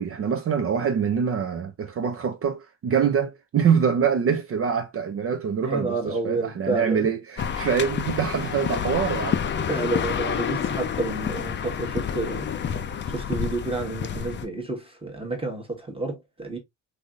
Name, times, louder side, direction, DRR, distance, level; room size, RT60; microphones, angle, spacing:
voice 1, 0.0-9.4, right 7 dB, 35° right, 0.5 m, -25 dB
voice 2, 5.6-7.1 9.7-12.5 13.1-16.6, right 2 dB, 15° right, 1.1 m, -30 dB
sound 1, 7.4-14.4, left 7 dB, 30° left, 0.5 m, -29 dB
3.3 x 2.6 x 2.4 m
supercardioid pair, 75°, 41 cm